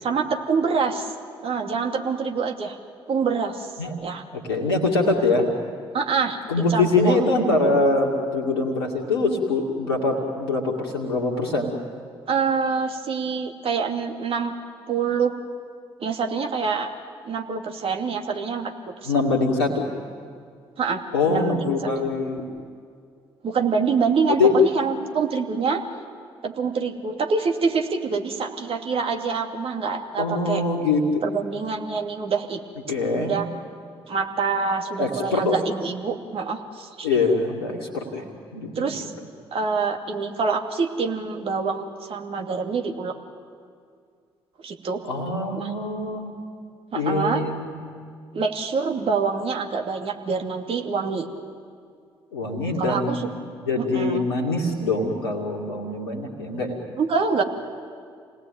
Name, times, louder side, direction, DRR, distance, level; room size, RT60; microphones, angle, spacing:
voice 1, 0.0-1.1 1.4-2.8 3.1-3.7 4.0-4.2 5.9-7.2 12.3-14.5 14.9-15.3 16.0-16.9 17.2-19.1 20.8-21.7 23.4-25.8 26.4-30.6 31.2-32.6 33.2-33.4 34.1-37.1 38.7-39.1 39.5-43.1 44.6-45.0 45.5-45.7 46.9-47.4 48.3-51.3 52.8-53.3 53.8-54.3 57.0-57.4, right 5 dB, 45° right, 3 dB, 2.7 m, -26 dB
voice 2, 4.3-5.5 6.5-11.7 19.1-19.8 21.1-22.5 24.4-24.5 30.2-31.2 32.9-33.4 35.0-35.5 37.0-38.2 38.5-39.0 45.0-46.3 46.9-47.7 52.3-53.3 53.7-56.8, left 3 dB, 80° left, 0 dB, 2.3 m, -23 dB
29.5 x 18.5 x 9.2 m, 2.2 s
figure-of-eight pair, 45°, 13 cm